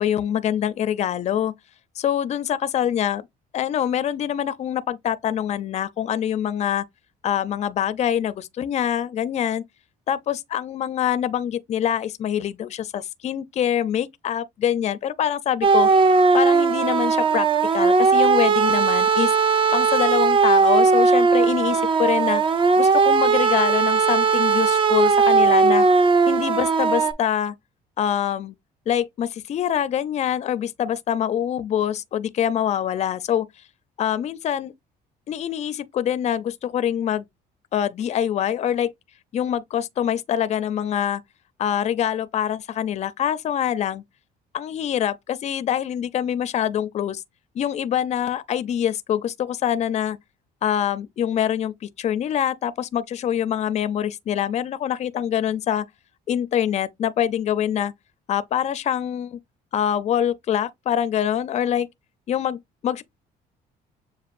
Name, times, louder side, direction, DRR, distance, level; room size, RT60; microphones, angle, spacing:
voice 1, 0.0-1.5 2.0-3.2 3.5-6.8 7.2-9.6 10.1-15.9 16.3-17.5 17.7-19.3 19.7-22.4 22.8-25.8 26.3-27.5 28.0-28.6 28.9-33.5 34.0-34.7 35.3-37.3 37.7-38.9 39.3-41.2 41.6-44.0 44.5-47.2 47.6-50.2 50.6-55.9 56.3-57.9 58.3-59.4 59.7-61.9 62.3-63.0, left 10 dB, 40° left, 0.4 m, -25 dB
sound 1, 15.6-27.1, right 4 dB, 30° right, 0.4 m, -18 dB
7.0 x 2.4 x 2.5 m
cardioid pair, 110°, 17 cm